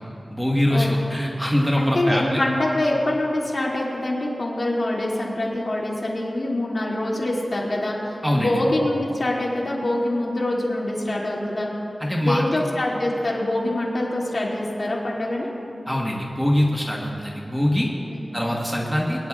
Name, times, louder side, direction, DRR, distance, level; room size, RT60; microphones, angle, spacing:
voice 1, 0.3-2.4 8.2-8.5 12.0-12.4 15.9-17.9 18.3-19.3, left 1 dB, 5° right, -2 dB, 1.4 m, -23 dB
voice 2, 1.7-11.7 12.2-15.5 18.1-18.2, left 1 dB, 50° left, -4 dB, 2.4 m, -25 dB
21.5 x 10.5 x 2.4 m, 2.7 s
wide cardioid pair, 65°, 0 cm